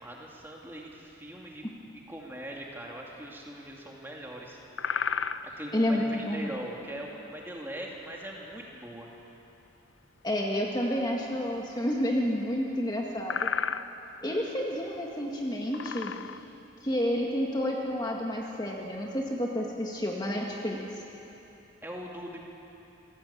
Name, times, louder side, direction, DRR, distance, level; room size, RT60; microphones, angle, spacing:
voice 1, 0.0-1.6 2.1-4.6 5.4-9.1 21.8-22.4, right 1 dB, 10° right, -2 dB, 2.5 m, -41 dB
sound 1, 4.6-5.6 8.7-8.8 12.2-12.3 12.7-12.8 13.2-14.0 14.7-14.8 15.5-16.5, left 6 dB, 70° left, 0.6 m, -32 dB
voice 2, 5.7-6.5 10.2-13.4 14.2-16.1 16.8-20.8, equal, 20° left, -1 dB, 1.9 m, -30 dB
26.5 x 17.0 x 8.7 m, 3.0 s
head